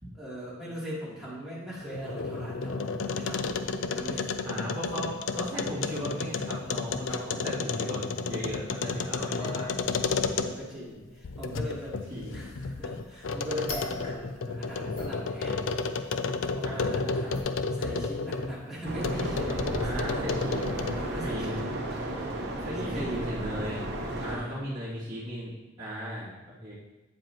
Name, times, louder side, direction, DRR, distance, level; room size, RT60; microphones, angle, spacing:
voice 1, 0.1-3.5 3.9-4.2 10.3-12.0 12.3-15.7 16.5-17.3 17.6-20.2 20.8-21.7 22.0-22.3 22.6-23.3 24.3-24.6, equal, ahead, -9 dB, 2.9 m, -40 dB
sound 1, 1.8-10.8 11.2-18.5 19.0-21.1, left 4 dB, 70° left, 0.5 m, -32 dB
voice 2, 4.4-9.8 12.1-12.4 16.6-17.4 19.8-20.6 21.2-21.6 22.6-23.8 24.2-25.5 25.8-26.7, equal, 20° right, -12 dB, 2.4 m, -37 dB
sound 2, 9.4-11.7 13.0-13.3 13.7-14.4 14.7-15.8 16.3-16.4 17.3-17.4, left 2 dB, 50° left, 2.7 m, -42 dB
sound 3, 18.8-24.4, right 1 dB, 55° right, 1.0 m, -33 dB
9.1 x 7.6 x 2.9 m, 1.1 s
head